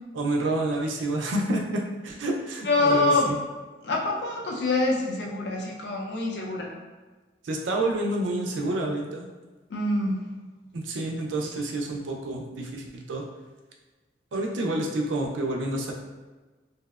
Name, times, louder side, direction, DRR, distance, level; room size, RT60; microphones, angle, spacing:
voice 1, 0.1-3.4 7.4-9.3 10.7-13.2 14.3-15.9, right 2 dB, 85° right, 1 dB, 0.4 m, -28 dB
voice 2, 2.6-3.3 3.8-6.7 9.7-10.2, left 2 dB, 65° left, -1 dB, 0.5 m, -25 dB
2.7 x 2.0 x 2.3 m, 1.3 s
head